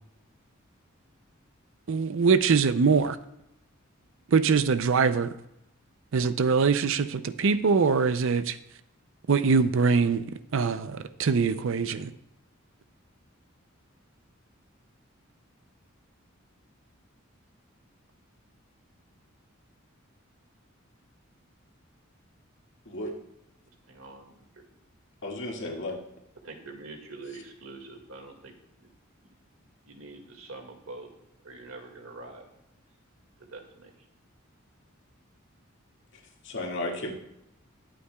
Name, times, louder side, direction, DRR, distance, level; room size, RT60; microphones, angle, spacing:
voice 1, 1.9-3.2 4.3-5.3 6.1-8.6 9.3-10.2 10.5-12.1, right 5 dB, 65° right, 0.5 m, -23 dB
voice 2, 23.9-24.6 26.4-28.5 28.8-28.9 29.9-31.1 31.4-32.5 33.4-33.9, right 3 dB, 85° right, 2.0 m, -44 dB
voice 3, 25.2-26.0 36.4-37.1, left 1 dB, 65° left, 2.0 m, -33 dB
21.0 x 8.6 x 2.3 m
head